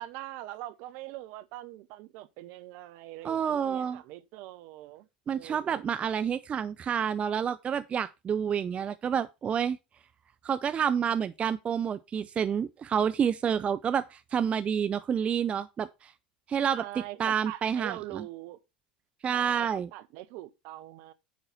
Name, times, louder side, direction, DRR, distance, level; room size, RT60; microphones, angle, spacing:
voice 1, 0.0-5.1 5.3-5.8 16.7-18.6 19.3-21.1, right 15 dB, 50° right, 0.8 m, -43 dB
voice 2, 3.2-4.0 5.3-9.8 10.4-16.1 16.5-16.8 17.2-18.2 19.2-19.9, right 7 dB, 25° right, 0.5 m, -29 dB
9.4 x 4.0 x 5.6 m
figure-of-eight pair, 80°, 5 cm